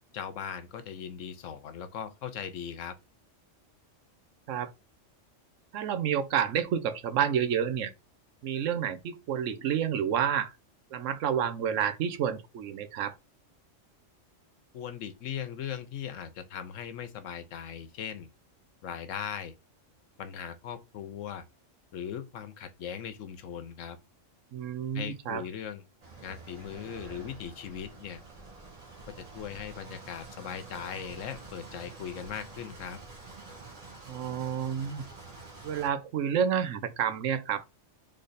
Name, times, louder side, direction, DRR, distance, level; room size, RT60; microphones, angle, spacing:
voice 1, 0.1-2.9 14.7-18.3 18.8-19.5 20.2-21.4 21.9-24.0 24.9-25.8 26.2-28.2 29.0-33.0, left 8 dB, 85° left, 1.1 m, -39 dB
voice 2, 5.7-7.9 8.4-10.6 10.9-13.2 24.5-25.4 34.1-35.0 35.6-37.6, right 8 dB, 85° right, 1.0 m, -29 dB
sound 1, 26.0-35.9, right 3 dB, 30° right, 1.1 m, -47 dB
3.5 x 3.3 x 4.0 m
omnidirectional pair, 1.3 m